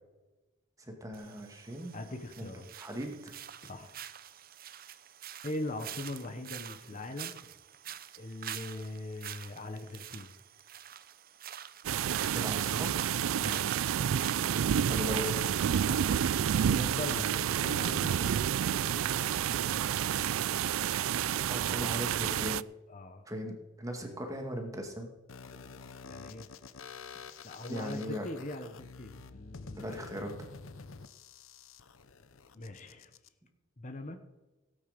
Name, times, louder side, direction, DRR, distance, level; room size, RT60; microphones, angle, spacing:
voice 1, 0.8-2.0 2.4-2.5 2.8-3.3 12.3-12.9 14.9-15.4 21.4-22.6 23.3-25.1 27.7-28.2 29.8-30.3, equal, 15° right, 3 dB, 2.2 m, -38 dB
sound 1, 1.1-14.8, right 10 dB, 45° right, 0.6 m, -47 dB
voice 2, 1.9-2.7 3.6-4.0 5.4-7.4 8.2-10.3 13.4-13.7 15.8-16.3 16.6-19.8 21.7-21.8 22.9-23.3 26.1-26.5 27.4-30.1 32.5-33.1 33.8-34.2, left 2 dB, 35° left, 7 dB, 1.0 m, -41 dB
sound 2, 11.8-22.6, right 9 dB, 90° right, 0.4 m, -29 dB
sound 3, 25.3-33.3, left 4 dB, 80° left, 0.8 m, -49 dB
17.0 x 9.0 x 5.3 m, 1.1 s
head